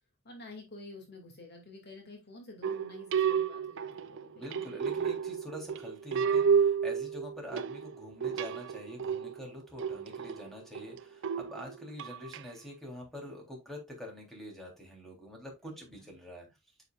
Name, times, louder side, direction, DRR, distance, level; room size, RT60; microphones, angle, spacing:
voice 1, 0.2-4.8 15.6-16.1, left 2 dB, 50° left, 2 dB, 2.5 m, -50 dB
sound 1, 2.6-12.4, right 7 dB, 60° right, 0.5 m, -31 dB
voice 2, 4.3-16.5, equal, ahead, 0 dB, 3.6 m, -45 dB
9.4 x 6.7 x 2.5 m, 0.21 s
head